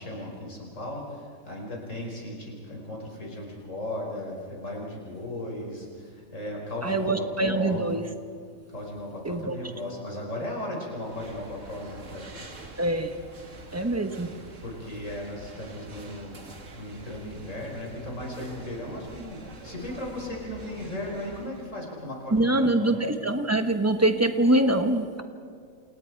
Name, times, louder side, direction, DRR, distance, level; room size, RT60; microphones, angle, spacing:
voice 1, 0.0-7.9 8.7-12.3 14.6-16.4 16.8-23.1, left 1 dB, 60° left, -1 dB, 5.4 m, -36 dB
voice 2, 6.8-8.0 9.2-9.5 12.8-13.1 13.7-14.3 22.3-25.2, right 1 dB, 10° right, 6 dB, 1.1 m, -24 dB
sound 1, 10.9-21.7, right 2 dB, 60° right, 2.3 m, -46 dB
28.5 x 27.5 x 4.7 m, 2.3 s
omnidirectional pair, 1.5 m